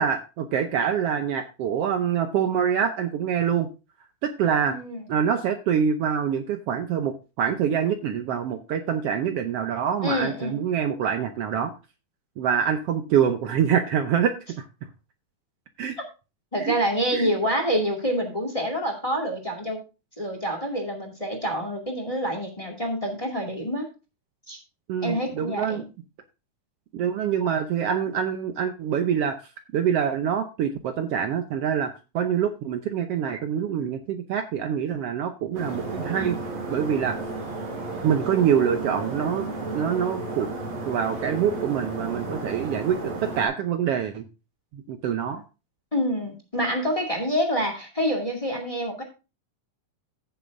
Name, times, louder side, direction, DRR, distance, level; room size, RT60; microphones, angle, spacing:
voice 1, 0.0-3.7 4.2-4.8 5.1-11.7 12.4-14.6 15.8-16.0 16.6-16.7 17.1-17.3 24.9-25.8 26.9-29.4 29.7-36.4 36.7-37.2 38.0-40.5 40.9-44.2 44.7-45.4, right 8 dB, 90° right, 6 dB, 1.3 m, -25 dB
voice 2, 4.7-5.0 10.0-10.5 16.5-19.8 20.2-23.9 24.5-24.6 25.0-25.8 45.9-49.0, equal, 15° left, 4 dB, 1.8 m, -27 dB
sound 1, 35.5-43.5, right 3 dB, 55° right, 6.6 m, -33 dB
15.5 x 7.1 x 2.6 m, 0.30 s
omnidirectional pair, 3.8 m